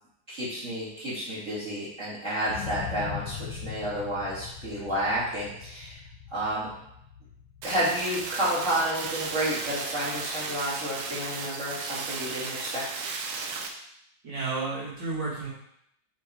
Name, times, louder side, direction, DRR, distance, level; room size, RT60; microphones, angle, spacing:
voice 1, 0.3-6.0 6.3-6.7 7.6-13.0, right 1 dB, 40° right, -10 dB, 2.7 m, -30 dB
sound 1, 2.5-10.4 10.8-10.9, left 10 dB, 75° left, 1.2 m, -42 dB
sound 2, 7.6-13.7, right 4 dB, 85° right, 1.6 m, -35 dB
voice 2, 14.2-15.5, right 3 dB, 65° right, -7 dB, 2.9 m, -31 dB
6.2 x 3.8 x 4.9 m, 0.75 s
omnidirectional pair, 2.1 m